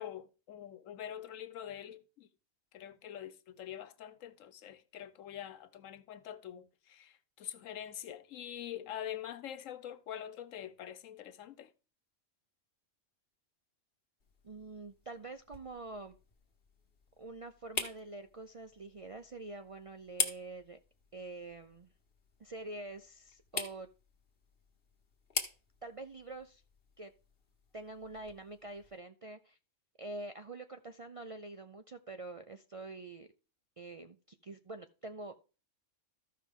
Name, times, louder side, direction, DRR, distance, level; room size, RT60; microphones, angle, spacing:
voice 1, 0.0-2.3 2.7-11.7, left 10 dB, 90° left, 1.1 m, -45 dB
sound 1, 14.2-29.0, left 4 dB, 50° left, 1.5 m, -44 dB
voice 2, 14.4-16.1 17.2-20.8 21.1-21.9 22.4-23.9 25.8-26.6 27.0-27.1 27.7-29.6 30.0-33.3 33.8-35.3, right 2 dB, 50° right, 0.4 m, -46 dB
14.0 x 5.5 x 3.6 m
omnidirectional pair, 1.3 m